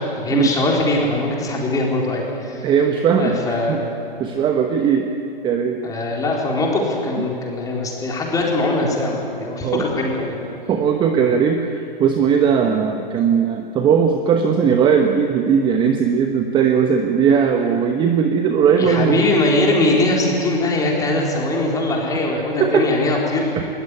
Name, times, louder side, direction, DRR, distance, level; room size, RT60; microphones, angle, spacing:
voice 1, 0.2-2.7 3.2-3.8 5.8-10.5 18.8-23.5, left 2 dB, 10° left, -1 dB, 4.2 m, -21 dB
voice 2, 2.6-3.8 4.2-5.1 5.4-5.8 9.6-9.8 10.7-19.2 22.6-22.8 23.6-23.7, right 7 dB, 15° right, 5 dB, 1.1 m, -18 dB
21.0 x 19.0 x 9.9 m, 2.6 s
figure-of-eight pair, 125°, 29 cm